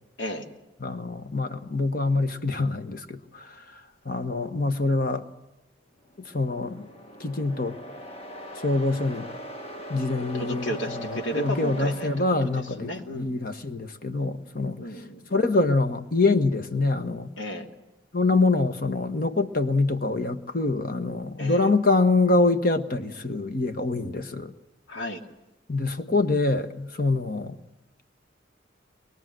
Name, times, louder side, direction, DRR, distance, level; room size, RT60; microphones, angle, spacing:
voice 1, 0.8-3.6 4.0-5.2 6.2-6.9 7.2-7.8 8.6-9.3 9.9-14.8 15.3-17.3 18.1-24.5 25.7-27.6, left 3 dB, 45° left, 8 dB, 1.3 m, -25 dB
sound 1, 6.0-13.1, equal, 30° left, 1.7 m, -41 dB
voice 2, 10.3-12.5 12.8-13.4 14.8-15.4 17.4-17.7 21.4-21.7 24.9-25.2, equal, 70° left, 3 dB, 2.6 m, -33 dB
23.5 x 21.5 x 7.7 m, 0.98 s
head